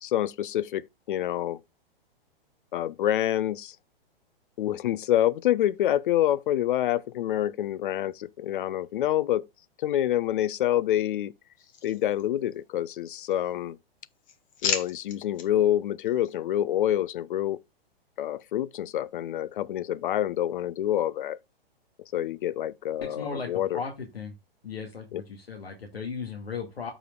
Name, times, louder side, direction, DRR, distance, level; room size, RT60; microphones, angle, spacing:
voice 1, 0.0-1.6 2.7-3.8 4.6-9.4 9.8-11.3 11.8-13.8 14.6-17.6 18.2-21.4 22.1-23.8 25.1-25.2, left 12 dB, 60° left, 0.6 m, -27 dB
sound 1, 11.6-12.7 13.0-13.7 14.0-15.5 16.0-16.3, left 7 dB, 25° left, 1.4 m, -35 dB
voice 2, 23.0-24.3 24.6-26.9, left 5 dB, 80° left, 2.0 m, -36 dB
13.5 x 5.0 x 2.3 m
hypercardioid pair, 120°, 30 cm